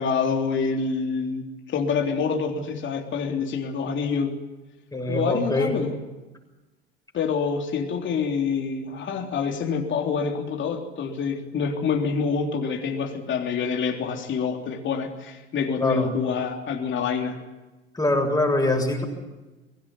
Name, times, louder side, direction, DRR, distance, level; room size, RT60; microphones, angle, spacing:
voice 1, 0.0-4.4 5.1-5.9 7.1-17.4, left 5 dB, 40° left, 2 dB, 3.5 m, -26 dB
voice 2, 4.9-5.8 15.8-16.1 17.9-19.0, left 2 dB, 10° left, 2 dB, 7.2 m, -23 dB
23.5 x 18.5 x 9.6 m, 1.1 s
figure-of-eight pair, 70°, 30 cm